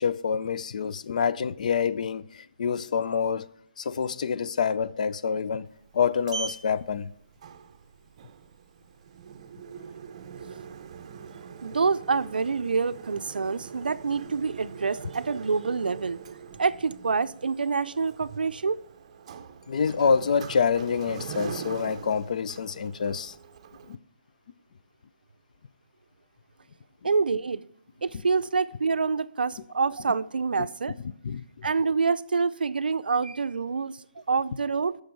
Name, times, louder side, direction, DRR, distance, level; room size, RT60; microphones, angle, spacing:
voice 1, 0.0-3.5 3.8-5.7 5.9-7.1 19.7-23.3 23.9-24.0 30.6-30.7 31.2-31.7, left 6 dB, 55° left, 0.4 m, -27 dB
Sliding door, 5.7-24.0, right 6 dB, 40° right, 0.6 m, -42 dB
voice 2, 11.6-16.2 16.6-18.8 27.0-27.7 28.0-30.9 31.6-34.0 34.3-35.0, right 4 dB, 85° right, 0.4 m, -26 dB
9.4 x 6.4 x 4.5 m
hypercardioid pair, 160°, 5 cm